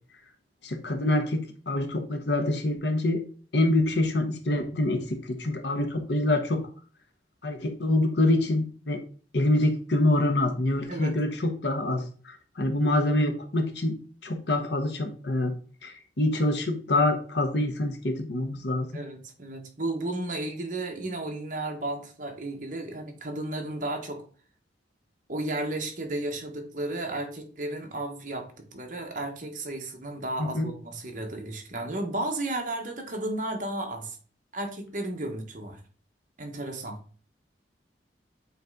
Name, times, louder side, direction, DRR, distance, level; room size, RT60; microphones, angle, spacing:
voice 1, 0.6-3.2 3.5-6.6 7.4-9.0 9.3-13.9 14.2-15.5 15.8-18.9 30.5-30.7, left 1 dB, 75° left, 6 dB, 1.1 m, -26 dB
voice 2, 18.9-24.2 25.3-34.2 34.5-35.8 36.4-37.0, right 2 dB, 45° right, 3 dB, 1.2 m, -33 dB
8.0 x 3.3 x 3.9 m, 0.41 s
head